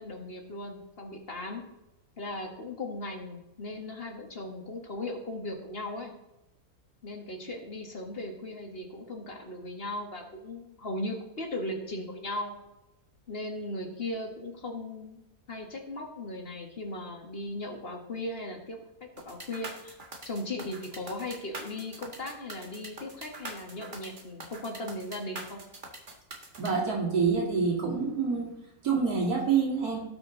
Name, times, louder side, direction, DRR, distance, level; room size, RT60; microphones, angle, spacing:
voice 1, 0.0-1.7 2.2-6.1 7.0-12.5 13.3-20.0 20.2-25.6, left 1 dB, 40° left, 2 dB, 2.0 m, -37 dB
sound 1, 19.2-26.7, right 2 dB, 35° right, 1.8 m, -43 dB
voice 2, 26.6-28.5 28.8-30.0, right 5 dB, 90° right, -3 dB, 2.9 m, -27 dB
18.0 x 6.3 x 4.0 m, 0.93 s
omnidirectional pair, 1.6 m